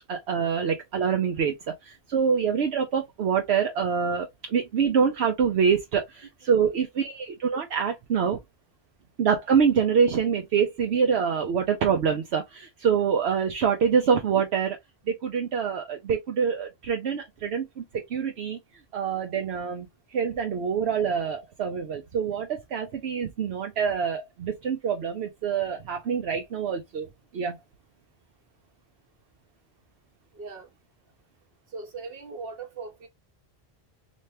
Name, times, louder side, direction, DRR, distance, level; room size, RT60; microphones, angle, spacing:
voice 1, 0.0-1.5 2.1-8.4 9.2-14.8 15.1-18.6 18.9-19.9 20.1-27.1 27.3-27.6, right 6 dB, 80° right, 1.0 m, -25 dB
voice 2, 30.3-30.7 31.7-33.1, right 4 dB, 65° right, 1.3 m, -39 dB
3.3 x 3.2 x 2.7 m
omnidirectional pair, 1.1 m